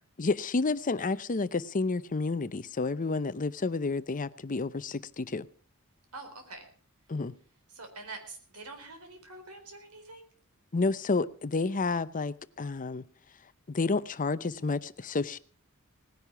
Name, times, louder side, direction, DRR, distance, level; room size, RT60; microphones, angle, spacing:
voice 1, 0.2-5.5 7.1-7.3 10.7-13.0 13.7-15.4, left 3 dB, 35° left, 0.7 m, -30 dB
voice 2, 6.1-6.7 7.7-10.3, right 3 dB, 85° right, 4.2 m, -45 dB
18.5 x 10.5 x 6.0 m
head